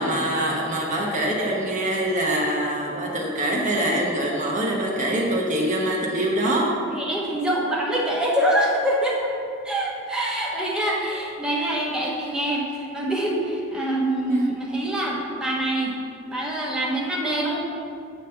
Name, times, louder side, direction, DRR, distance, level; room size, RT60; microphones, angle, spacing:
voice 1, 0.0-6.7 14.3-14.5, right 1 dB, 35° right, -2 dB, 0.9 m, -24 dB
voice 2, 6.9-9.3 9.6-16.0 16.2-17.6, right 1 dB, 5° right, -5 dB, 1.1 m, -25 dB
8.2 x 3.6 x 6.7 m, 2.5 s
head